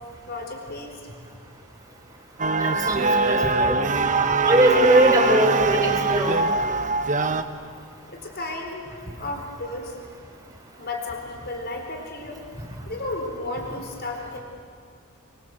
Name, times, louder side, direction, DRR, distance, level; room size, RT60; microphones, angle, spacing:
voice 1, 0.3-1.0 8.1-8.8 9.2-10.0 10.8-12.5 12.9-14.4, left 2 dB, 50° left, 3 dB, 4.1 m, -33 dB
sound 1, 2.4-7.4, right 3 dB, 35° right, 1.1 m, -22 dB
voice 2, 2.6-3.7 4.4-6.4, right 1 dB, 15° right, -2 dB, 4.9 m, -20 dB
26.5 x 24.0 x 8.1 m, 2.3 s
head